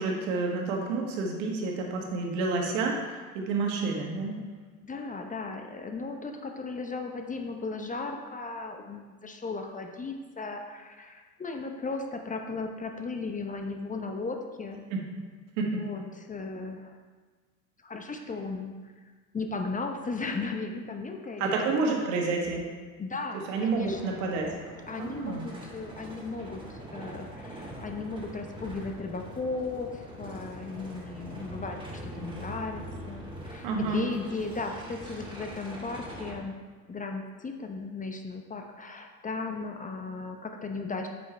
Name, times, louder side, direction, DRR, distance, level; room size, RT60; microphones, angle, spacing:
voice 1, 0.0-4.3 14.9-15.0 15.6-15.8 21.4-22.6 23.5-24.6 25.0-25.5 33.6-34.0, right 3 dB, 65° right, 1 dB, 1.7 m, -29 dB
voice 2, 4.8-14.8 15.7-17.0 17.8-21.5 23.0-24.5 24.9-36.5 36.9-41.1, left 3 dB, 20° left, 4 dB, 0.8 m, -36 dB
sound 1, 23.5-36.4, equal, 10° right, 2.4 m, -43 dB
8.4 x 6.9 x 3.4 m, 1.4 s
hypercardioid pair, 75°, 42 cm